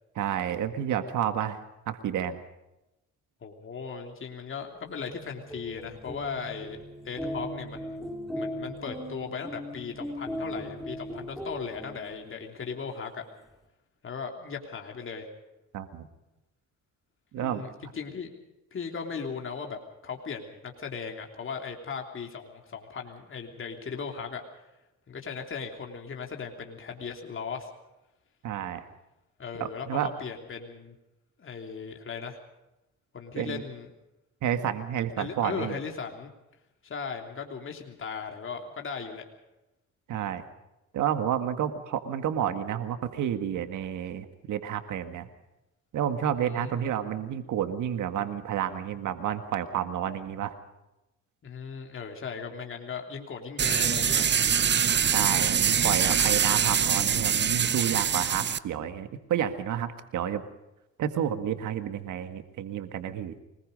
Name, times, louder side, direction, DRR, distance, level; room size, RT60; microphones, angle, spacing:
voice 1, 0.2-1.6 1.9-2.4 15.7-16.1 17.3-17.6 28.4-28.8 29.6-30.1 33.4-33.6 34.4-35.8 40.1-40.4 40.9-45.3 45.9-50.5 55.1-60.4 61.0-63.3, right 10 dB, 80° right, 8 dB, 1.8 m, -30 dB
voice 2, 3.4-6.8 7.0-8.0 8.3-13.2 14.0-15.3 17.3-18.3 18.7-24.6 25.1-27.7 29.4-30.9 31.4-32.4 33.1-33.9 35.2-36.3 36.8-39.2 46.4-46.9 51.4-54.3, left 5 dB, 45° left, 2 dB, 3.2 m, -37 dB
sound 1, 4.8-12.4, equal, ahead, 5.3 m, -38 dB
sound 2, 53.6-58.6, right 8 dB, 35° right, 0.8 m, -24 dB
24.5 x 20.5 x 5.3 m, 0.96 s
cardioid pair, 90°, 30 cm